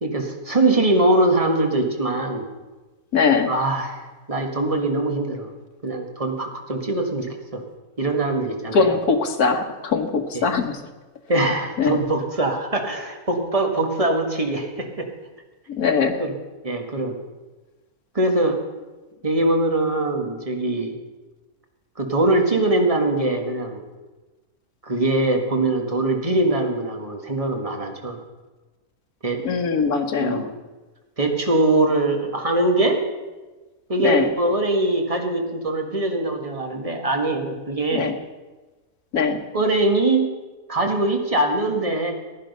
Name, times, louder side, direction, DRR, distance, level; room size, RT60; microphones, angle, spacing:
voice 1, 0.0-2.5 3.5-5.5 5.8-7.6 8.0-9.0 10.3-10.5 11.3-15.1 16.2-16.3 16.6-17.1 18.2-18.6 19.2-20.9 22.0-23.8 24.8-28.2 29.2-29.4 30.2-30.5 31.2-33.0 33.9-38.1 39.5-40.3 40.7-42.1, right 2 dB, 25° right, 2 dB, 1.8 m, -22 dB
voice 2, 3.1-3.5 8.7-10.8 11.8-12.0 15.7-16.2 29.4-30.5 34.0-34.3 37.9-38.2 39.1-39.4, left 5 dB, 85° left, 6 dB, 1.7 m, -21 dB
15.5 x 10.5 x 5.5 m, 1.2 s
omnidirectional pair, 1.5 m